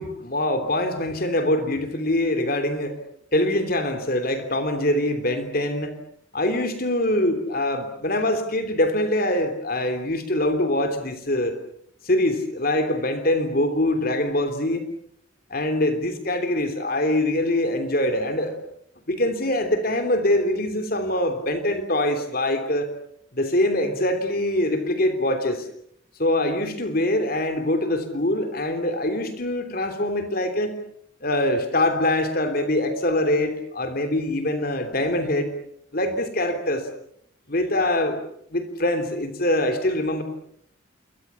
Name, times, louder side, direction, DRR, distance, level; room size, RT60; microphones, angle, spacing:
voice 1, 0.0-3.0 3.3-5.9 6.3-11.5 12.0-14.8 15.5-18.6 19.1-22.9 23.3-25.7 26.2-30.8 31.2-35.5 35.9-36.9 37.5-38.2 38.5-40.2, left 1 dB, 50° left, 7 dB, 3.2 m, -24 dB
28.5 x 24.0 x 7.1 m, 0.69 s
head